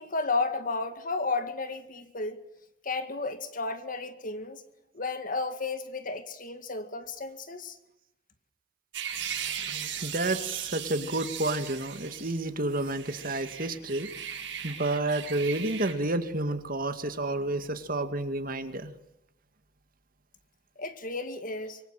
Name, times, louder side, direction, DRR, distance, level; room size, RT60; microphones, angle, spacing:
voice 1, 0.0-2.4 2.8-4.6 4.9-7.8 20.8-21.8, left 3 dB, 45° left, 2.1 m, -33 dB
sound 1, 8.9-12.4 12.7-15.9, right 9 dB, 75° right, 6.2 m, -38 dB
voice 2, 9.6-14.1 14.6-18.9, right 2 dB, 50° right, 2.2 m, -30 dB
25.0 x 23.5 x 7.7 m
head